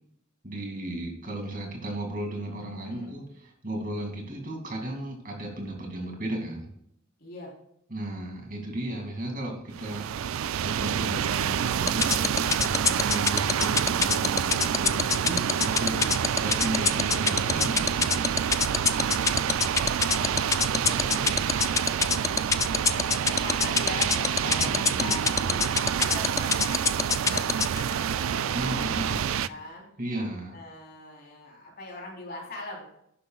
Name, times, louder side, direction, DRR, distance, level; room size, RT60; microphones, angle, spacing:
voice 1, 0.4-3.3 3.6-6.7 7.9-18.4 21.0-21.3 24.4-25.3 28.5-29.4 30.0-30.5, right 1 dB, 40° right, 1 dB, 2.4 m, -35 dB
voice 2, 2.8-3.2 7.2-7.5 17.4-17.7 19.7-22.2 22.7-26.9 27.1-29.9 30.5-32.8, left 1 dB, 50° left, -2 dB, 3.7 m, -41 dB
sound 1, 9.7-29.5, right 8 dB, 80° right, 0.4 m, -28 dB
sound 2, 11.9-27.8, left 6 dB, 15° left, 0.3 m, -23 dB
12.0 x 9.9 x 2.4 m, 0.75 s
head